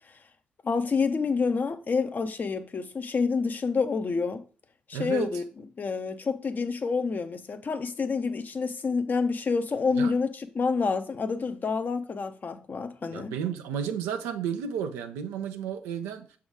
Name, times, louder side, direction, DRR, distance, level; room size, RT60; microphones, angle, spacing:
voice 1, 0.6-4.4 4.9-5.4 5.8-13.3, left 4 dB, 40° left, 0.8 m, -28 dB
voice 2, 4.9-5.3 10.0-10.1 13.1-16.3, right 8 dB, 70° right, 0.7 m, -32 dB
7.1 x 3.6 x 4.8 m
hypercardioid pair, 40°, 5 cm